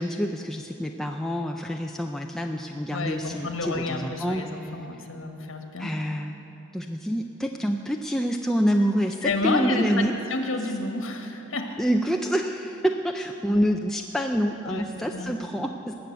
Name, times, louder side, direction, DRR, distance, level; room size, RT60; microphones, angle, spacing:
voice 1, 0.0-4.4 5.8-6.3 6.7-10.1 11.8-15.9, equal, ahead, 2 dB, 0.4 m, -27 dB
voice 2, 2.9-6.0 9.2-10.0 10.3-11.8 14.6-15.5, left 2 dB, 65° left, 4 dB, 1.6 m, -30 dB
20.0 x 7.0 x 8.0 m, 2.8 s
head